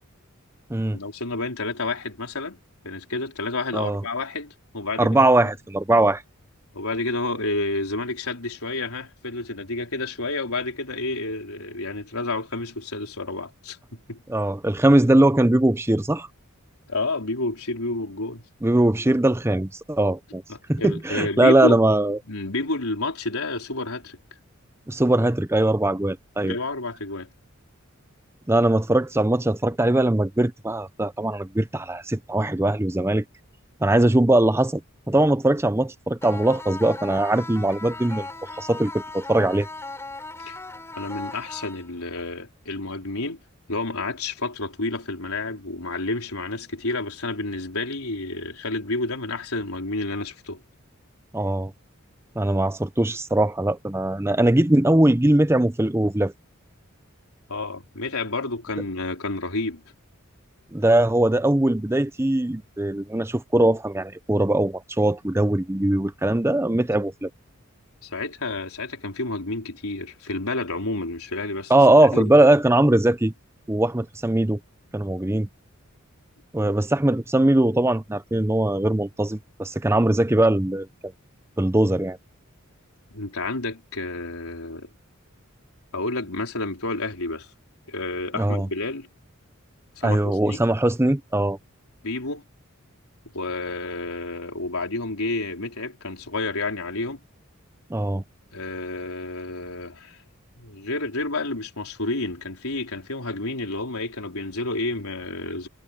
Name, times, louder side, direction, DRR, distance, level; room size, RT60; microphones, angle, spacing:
voice 1, 0.9-2.6 2.8-5.1 5.4-5.5 6.7-14.2 16.9-18.4 20.5-21.8 22.3-24.2 26.4-27.3 40.4-40.6 41.0-43.4 43.7-50.6 57.5-59.8 68.0-72.3 83.1-84.9 85.9-87.5 87.9-89.1 90.0-90.6 92.0-92.4 93.3-97.2 98.5-100.2 100.6-105.7, left 2 dB, 90° left, 4.3 m, -30 dB
voice 2, 5.0-6.2 14.3-16.3 18.6-20.4 20.7-22.2 24.9-26.6 28.5-33.2 33.8-34.8 35.1-38.3 38.6-39.7 51.3-51.7 52.4-56.3 60.7-67.3 71.7-73.3 73.7-74.6 74.9-75.5 76.5-80.9 81.6-82.2 88.3-88.7 90.0-91.6 97.9-98.2, right 1 dB, 10° right, 0.6 m, -20 dB
sound 1, 36.2-42.2, left 2 dB, 15° left, 3.6 m, -38 dB
head